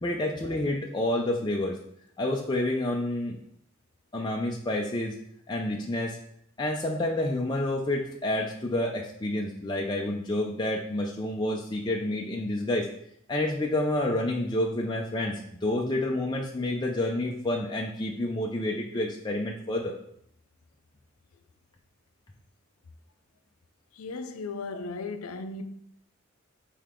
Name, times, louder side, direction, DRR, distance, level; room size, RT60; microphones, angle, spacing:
voice 1, 0.0-1.8 2.2-3.4 4.1-5.1 5.5-6.2 6.6-12.9 13.3-19.9, left 1 dB, 20° left, 0.5 m, -29 dB
voice 2, 23.9-25.6, left 3 dB, 90° left, 0.5 m, -36 dB
6.6 x 4.6 x 3.7 m
head